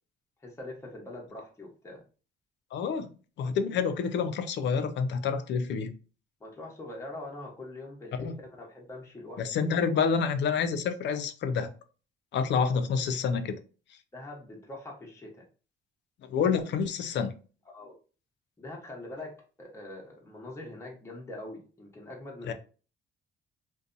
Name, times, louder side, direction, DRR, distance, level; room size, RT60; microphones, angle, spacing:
voice 1, 0.4-2.0 6.4-9.7 14.1-15.5 17.7-18.0 18.6-22.5, left 2 dB, 15° left, 0.8 m, -43 dB
voice 2, 2.7-3.1 3.4-5.9 8.2-8.4 9.4-11.7 12.3-13.6 16.3-17.3 22.5-22.6, left 6 dB, 65° left, 0.4 m, -28 dB
2.6 x 2.2 x 2.5 m
cardioid pair, 90°, 20 cm